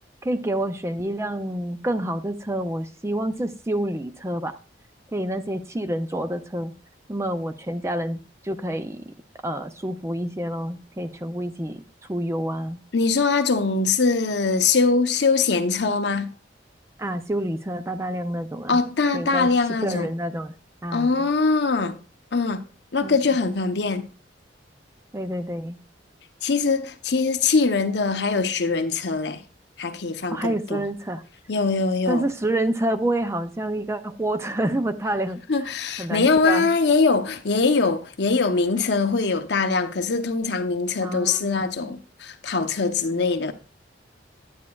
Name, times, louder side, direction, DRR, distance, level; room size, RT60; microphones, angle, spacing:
voice 1, 0.2-4.5 5.1-6.7 7.1-9.1 9.4-11.8 12.1-12.8 17.0-18.8 19.1-19.5 19.8-20.5 20.8-21.3 23.0-23.1 25.1-25.8 30.3-31.2 32.1-35.4 36.0-36.7 41.0-41.5 41.8-41.9, right 1 dB, 15° right, 0.4 m, -28 dB
voice 2, 12.9-16.3 18.7-20.1 20.9-22.0 22.3-22.6 22.9-24.1 26.4-29.4 29.8-30.8 31.5-32.2 35.5-43.5, left 4 dB, 65° left, 0.8 m, -22 dB
9.6 x 9.5 x 2.3 m
head